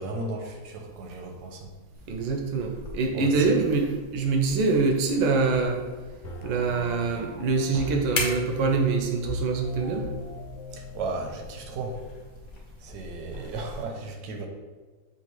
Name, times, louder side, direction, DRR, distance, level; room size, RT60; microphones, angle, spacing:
voice 1, 0.0-1.7 3.1-3.5 10.7-12.0 12.8-14.5, right 3 dB, 70° right, 3 dB, 1.0 m, -35 dB
sound 1, 1.9-13.8, left 2 dB, 50° left, 0.9 m, -41 dB
voice 2, 2.1-5.8 6.4-10.1, right 4 dB, 85° right, 3 dB, 1.4 m, -25 dB
sound 2, 6.2-12.3, left 2 dB, 85° left, 1.5 m, -39 dB
7.0 x 2.5 x 3.0 m, 1.4 s
omnidirectional pair, 2.1 m